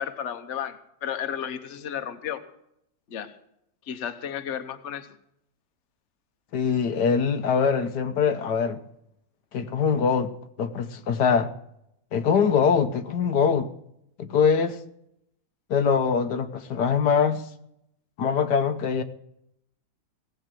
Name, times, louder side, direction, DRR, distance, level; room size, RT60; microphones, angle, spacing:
voice 1, 0.0-2.4 3.1-3.4 3.8-5.2, left 8 dB, 50° left, 1.3 m, -33 dB
voice 2, 6.5-8.8 9.5-10.3 10.6-11.5 12.1-13.7 14.2-14.8 15.7-17.5 18.2-19.0, left 6 dB, 90° left, 1.6 m, -23 dB
17.5 x 8.1 x 7.4 m
omnidirectional pair, 1.7 m